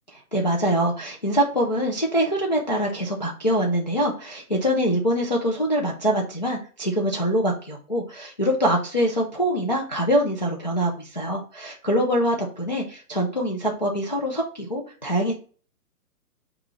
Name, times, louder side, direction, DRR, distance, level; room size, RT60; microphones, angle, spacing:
voice 1, 0.3-15.3, equal, 30° left, -2 dB, 0.4 m, -24 dB
5.6 x 2.4 x 3.1 m, 0.39 s
hypercardioid pair, 150°, 48 cm